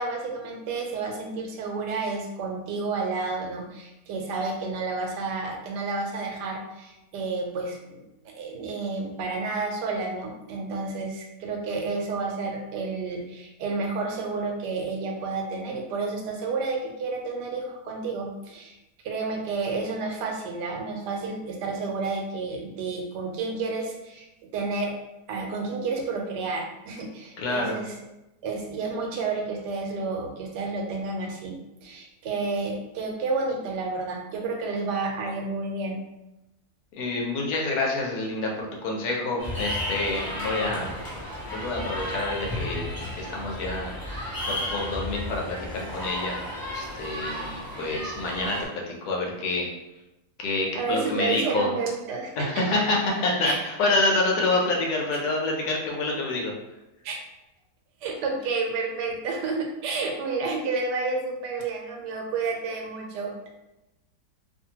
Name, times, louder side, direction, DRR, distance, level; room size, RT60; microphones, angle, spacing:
voice 1, 0.0-8.0 8.3-18.8 19.0-24.3 24.5-24.9 25.3-27.9 28.4-36.0 50.7-52.6 53.4-53.6 55.1-55.2 57.0-57.2 58.0-63.5, right 3 dB, 85° right, 1 dB, 1.2 m, -30 dB
voice 2, 27.4-27.8 37.0-40.9 41.5-43.9 44.5-49.7 50.4-51.7 52.4-56.5, left 2 dB, 70° left, -1 dB, 1.1 m, -27 dB
sound 1, 39.4-48.6, left 1 dB, 25° left, 0.4 m, -33 dB
2.7 x 2.5 x 2.8 m, 0.95 s
omnidirectional pair, 1.8 m